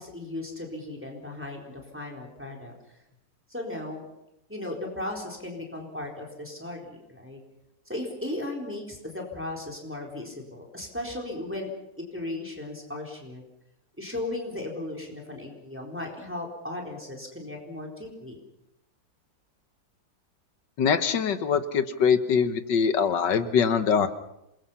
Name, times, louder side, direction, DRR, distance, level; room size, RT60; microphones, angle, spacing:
voice 1, 0.0-2.7 3.5-4.1 4.5-7.4 7.9-11.7 12.1-13.4 14.0-18.4, left 1 dB, 5° right, 0 dB, 4.1 m, -36 dB
voice 2, 20.8-24.1, left 6 dB, 70° left, 10 dB, 1.8 m, -23 dB
27.5 x 21.5 x 5.7 m, 0.85 s
omnidirectional pair, 2.0 m